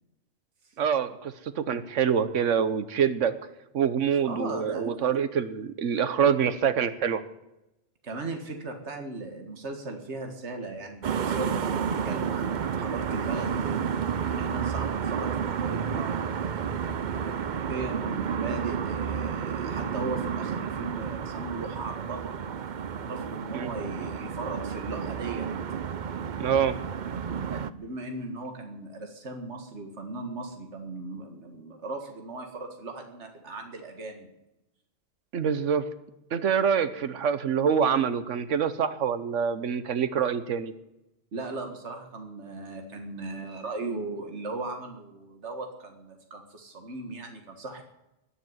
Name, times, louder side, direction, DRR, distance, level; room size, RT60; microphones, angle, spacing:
voice 1, 0.8-3.3 3.7-7.2 23.5-23.7 26.4-26.8 35.3-35.8 36.3-40.7, right 7 dB, 85° right, 12 dB, 1.3 m, -25 dB
voice 2, 4.1-4.9 8.0-13.8 14.2-16.7 17.1-22.4 22.9-25.5 27.7-34.3 41.3-47.8, right 2 dB, 70° right, 4 dB, 2.1 m, -38 dB
sound 1, 11.0-27.7, right 7 dB, 50° right, 0.7 m, -31 dB
20.5 x 7.1 x 9.4 m, 0.92 s
omnidirectional pair, 1.2 m